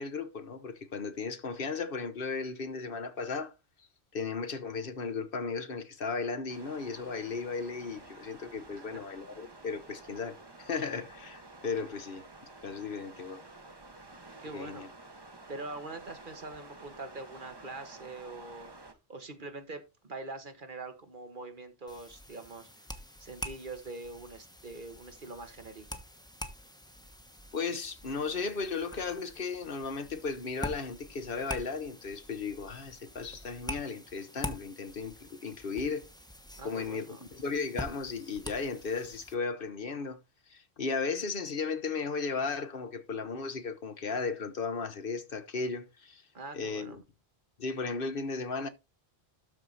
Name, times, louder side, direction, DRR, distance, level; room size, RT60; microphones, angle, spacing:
voice 1, 0.0-3.5 4.1-12.2 12.6-13.4 14.5-14.9 27.5-36.1 36.6-40.2 40.5-46.2 46.5-47.0 47.6-48.7, left 4 dB, 60° left, 1.2 m, -35 dB
sound 1, 6.5-18.9, right 2 dB, 25° right, 1.1 m, -51 dB
voice 2, 14.4-14.9 15.5-18.7 19.1-22.9 23.2-26.0 36.6-37.2 46.3-47.0, right 3 dB, 50° right, 1.5 m, -44 dB
sound 2, 21.9-39.4, equal, 5° left, 1.1 m, -45 dB
12.5 x 4.7 x 4.0 m
omnidirectional pair, 1.1 m